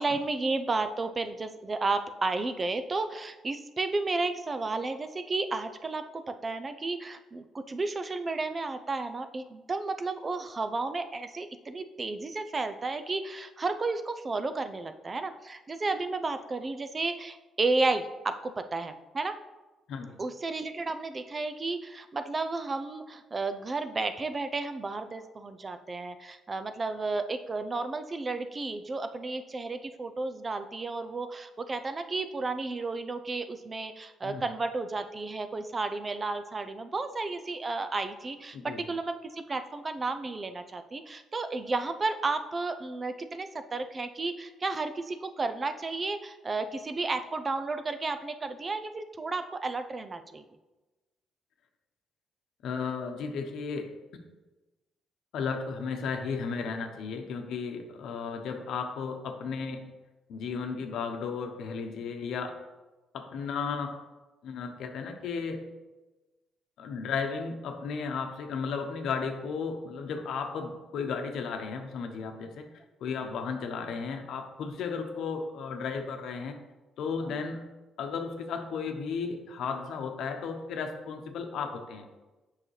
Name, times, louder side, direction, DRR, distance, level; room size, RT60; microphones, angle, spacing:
voice 1, 0.0-19.4 20.2-50.4, right 3 dB, 30° right, 9 dB, 0.5 m, -32 dB
voice 2, 19.9-20.2 34.2-34.5 38.5-38.9 52.6-53.9 55.3-59.8 60.3-62.6 63.1-64.0 64.4-65.7 66.8-72.7 73.0-76.6 77.0-77.7 78.0-82.0, left 5 dB, 80° left, 5 dB, 0.9 m, -34 dB
7.6 x 5.7 x 3.2 m, 1.1 s
cardioid pair, 90°, 0 cm